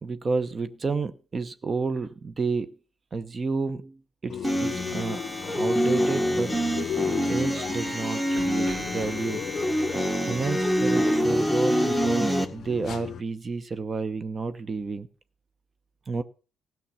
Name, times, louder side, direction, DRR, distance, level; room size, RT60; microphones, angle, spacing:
voice 1, 0.0-2.7 3.1-5.2 5.5-6.6 7.0-9.8 10.3-15.1 16.1-16.2, right 4 dB, 35° right, 1.0 m, -31 dB
sound 1, 4.3-13.2, left 8 dB, 60° left, 0.5 m, -35 dB
sound 2, 4.4-12.5, equal, ahead, 1.4 m, -26 dB
15.5 x 6.1 x 7.1 m
hypercardioid pair, 60°, 0 cm